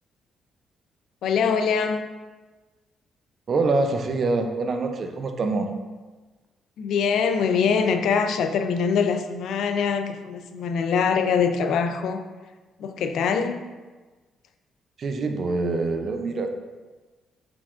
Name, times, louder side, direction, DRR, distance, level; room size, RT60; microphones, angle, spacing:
voice 1, 1.2-2.1 6.8-12.2 12.8-13.6, left 6 dB, 75° left, 7 dB, 0.3 m, -23 dB
voice 2, 3.5-5.7 15.0-16.5, right 3 dB, 50° right, 5 dB, 0.4 m, -25 dB
4.7 x 3.5 x 2.4 m, 1.3 s
cardioid pair, 90°, 0 cm